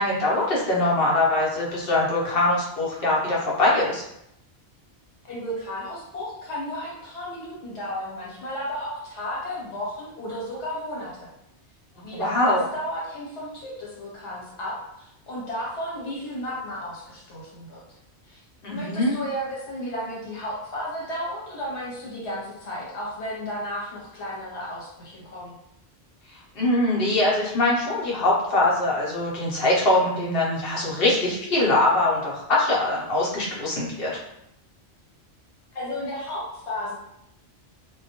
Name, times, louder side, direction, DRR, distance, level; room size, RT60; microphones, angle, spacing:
voice 1, 0.0-4.0 12.1-12.6 18.6-19.2 26.6-34.2, left 2 dB, 60° left, -5 dB, 0.8 m, -22 dB
voice 2, 5.2-11.3 12.0-17.8 18.2-18.4 18.7-25.6 35.7-37.0, equal, 75° left, -4 dB, 1.1 m, -33 dB
2.1 x 2.1 x 2.7 m, 0.80 s
omnidirectional pair, 1.2 m